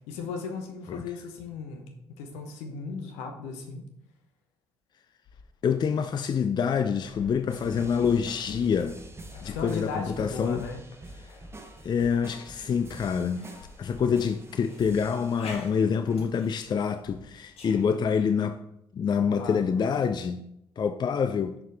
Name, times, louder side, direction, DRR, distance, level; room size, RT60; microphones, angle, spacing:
voice 1, 0.1-3.9 9.4-10.8 19.2-19.8, left 5 dB, 70° left, 1.0 m, -37 dB
sound 1, 5.2-18.1, left 3 dB, 55° left, 1.4 m, -50 dB
voice 2, 5.6-9.0 9.4-10.6 11.8-13.5 13.8-18.6 18.9-20.4 20.8-21.5, left 6 dB, 35° left, 0.4 m, -26 dB
sound 2, 7.5-15.7 16.1-16.3, right 1 dB, 20° right, 1.1 m, -46 dB
6.4 x 5.9 x 3.4 m
figure-of-eight pair, 45°, 12 cm